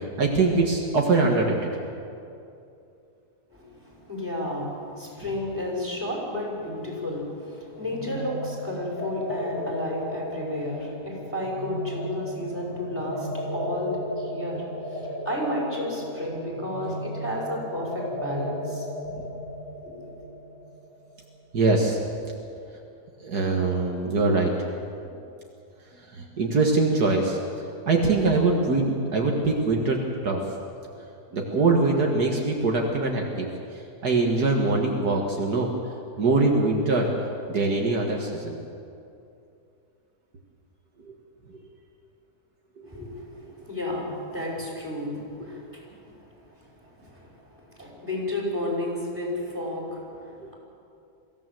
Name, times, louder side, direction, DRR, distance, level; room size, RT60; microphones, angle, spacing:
voice 1, 0.2-1.7 21.5-22.0 23.2-24.5 26.2-27.4 27.9-30.0 30.2-30.4 31.3-33.5 34.0-35.7 36.2-37.1 37.5-38.5 50.4-50.5, right 3 dB, 70° right, 0 dB, 2.2 m, -22 dB
voice 2, 3.5-18.9 19.8-20.2 42.8-50.5, left 1 dB, 5° right, -3 dB, 5.6 m, -32 dB
sound 1, 7.8-21.3, equal, 40° left, 3.9 m, -35 dB
23.5 x 15.5 x 7.7 m, 2.6 s
omnidirectional pair, 1.8 m